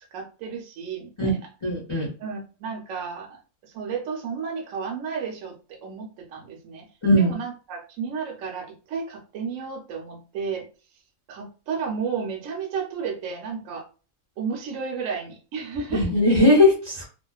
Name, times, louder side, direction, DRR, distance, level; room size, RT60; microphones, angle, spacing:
voice 1, 0.1-1.5 2.2-6.9 7.2-10.7 11.3-13.9 14.4-16.1, right 6 dB, 75° right, 1 dB, 1.0 m, -32 dB
voice 2, 1.6-2.1 7.0-7.3 15.9-17.1, left 1 dB, 30° left, -6 dB, 0.6 m, -19 dB
2.4 x 2.3 x 2.2 m, 0.36 s
omnidirectional pair, 1.4 m